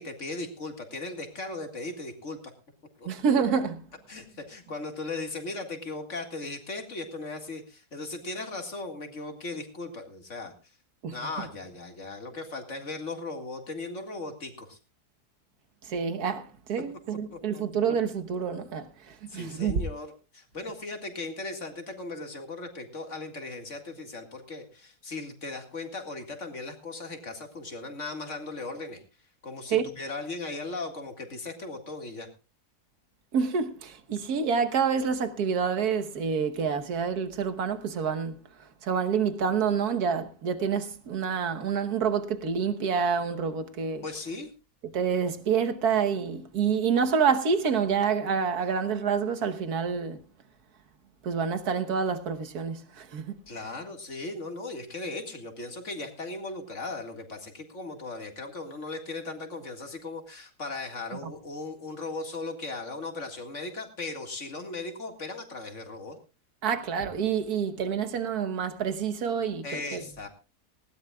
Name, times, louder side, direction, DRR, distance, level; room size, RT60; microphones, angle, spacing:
voice 1, 0.0-2.5 3.0-3.1 4.1-10.5 11.1-14.8 17.3-17.6 19.3-29.0 29.4-32.3 44.0-44.5 53.5-66.2 69.6-70.3, left 3 dB, 45° left, 2.3 m, -37 dB
voice 2, 3.1-3.8 11.0-11.2 15.9-19.8 29.7-29.9 33.3-38.4 38.8-44.0 44.9-50.2 51.2-53.3 61.2-61.3 66.6-70.0, right 6 dB, 65° right, 1.7 m, -27 dB
19.5 x 16.5 x 2.3 m
omnidirectional pair, 1.8 m